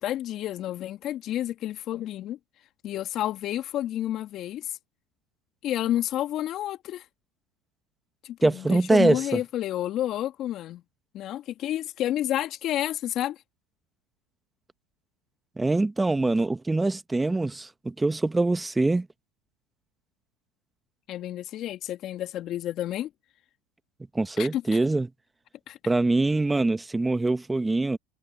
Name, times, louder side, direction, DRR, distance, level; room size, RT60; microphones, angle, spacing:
voice 1, 0.0-2.4 2.8-4.8 5.6-7.1 8.2-10.8 11.1-13.4 21.1-23.1 24.4-24.6 25.7-25.8, left 12 dB, 50° left, 2.0 m, -30 dB
voice 2, 8.4-9.4 15.6-19.1 24.1-25.1 25.9-28.0, right 2 dB, 10° right, 1.6 m, -24 dB
hypercardioid pair, 85°, 0 cm